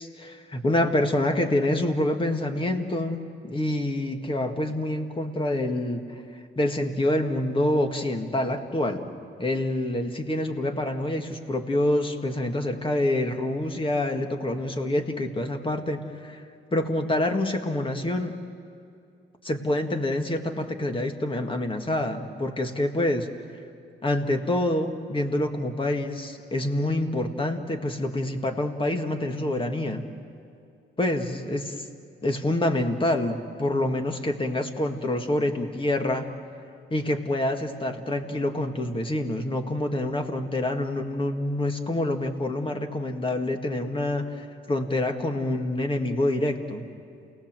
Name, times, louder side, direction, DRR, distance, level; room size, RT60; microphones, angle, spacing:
voice 1, 0.0-6.0 6.6-9.1 9.4-16.4 16.7-18.4 19.4-23.3 24.0-30.0 31.0-31.9 32.2-36.3 36.9-46.9, left 1 dB, 25° left, 5 dB, 2.0 m, -27 dB
28.5 x 18.0 x 7.6 m, 2.5 s
cardioid pair, 90°, 20 cm